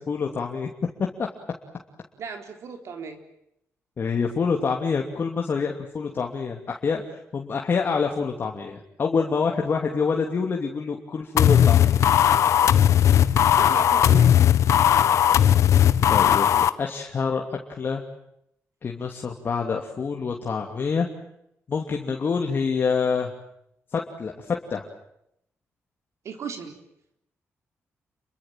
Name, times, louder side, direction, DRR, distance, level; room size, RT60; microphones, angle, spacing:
voice 1, 0.1-0.7 4.0-12.1 16.1-18.0 18.8-21.1 21.7-23.3 23.9-24.9, left 5 dB, 45° left, 2 dB, 2.8 m, -26 dB
voice 2, 2.2-3.2 13.6-14.4 26.2-26.8, right 6 dB, 70° right, 5 dB, 4.2 m, -36 dB
sound 1, 11.4-16.7, left 10 dB, 80° left, 1.3 m, -17 dB
29.0 x 23.5 x 7.6 m, 0.77 s
wide cardioid pair, 125°, 5 cm